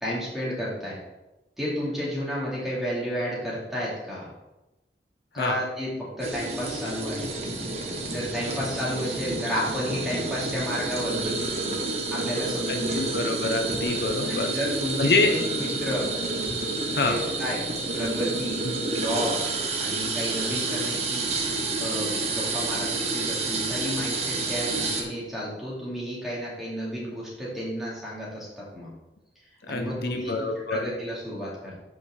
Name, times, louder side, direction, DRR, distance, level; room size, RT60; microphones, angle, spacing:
voice 1, 0.0-1.0 1.6-4.3 5.3-5.9 6.2-7.3 8.0-11.8 12.1-13.0 14.3-16.1 16.9-17.6 17.9-19.4 19.8-21.4 21.8-29.0 29.7-31.8, equal, ahead, -7 dB, 2.4 m, -32 dB
sound 1, 6.2-25.0, right 3 dB, 35° right, 1.0 m, -29 dB
voice 2, 12.7-14.5 15.0-15.3 16.9-17.2 18.6-18.7 29.6-30.8, left 3 dB, 60° left, 5 dB, 0.6 m, -26 dB
5.6 x 5.0 x 6.4 m, 1.0 s
head